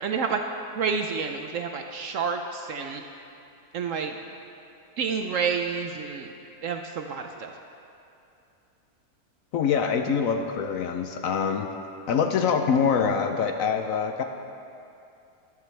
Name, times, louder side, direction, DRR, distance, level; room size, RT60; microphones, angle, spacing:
voice 1, 0.0-0.4 0.8-3.0 3.7-4.2 5.0-6.3 6.6-7.5, right 6 dB, 65° right, 5 dB, 0.8 m, -29 dB
voice 2, 9.5-11.7 12.1-14.2, left 6 dB, 65° left, 5 dB, 0.9 m, -24 dB
14.5 x 11.5 x 3.3 m, 2.7 s
omnidirectional pair, 1.7 m